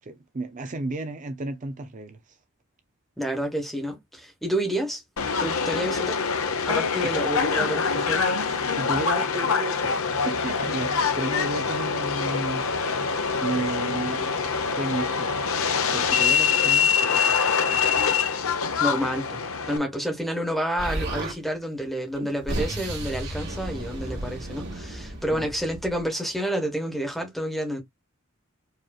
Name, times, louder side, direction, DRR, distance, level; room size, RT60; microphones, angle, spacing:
voice 1, 0.0-2.4 7.0-7.1 8.6-12.8 13.4-14.3 14.6-15.3 15.9-17.8 25.3-25.5, right 2 dB, 35° right, 0.5 m, -33 dB
voice 2, 3.2-5.0 5.4-6.2 6.7-8.6 18.8-27.8, equal, ahead, 1.2 m, -29 dB
Subway metro underground, 5.2-19.8, left 6 dB, 75° left, 0.8 m, -24 dB
Explosion, 20.8-21.4 22.1-26.0, right 1 dB, 50° right, 1.9 m, -33 dB
4.8 x 3.0 x 2.3 m
head